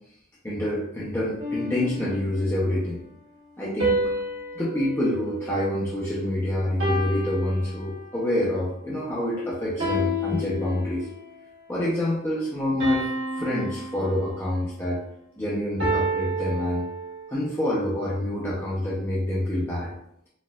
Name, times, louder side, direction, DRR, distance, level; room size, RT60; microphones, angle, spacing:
voice 1, 0.4-3.0 3.6-4.0 4.5-11.1 11.7-13.1 13.4-15.0 15.4-16.9 17.3-19.9, left 1 dB, 10° left, -8 dB, 0.6 m, -27 dB
sound 1, 1.4-2.6 3.8-6.2 6.8-8.3 9.8-11.3 12.8-14.7 15.8-17.4, right 1 dB, 65° right, 1.5 m, -30 dB
4.1 x 2.4 x 2.2 m, 0.74 s
head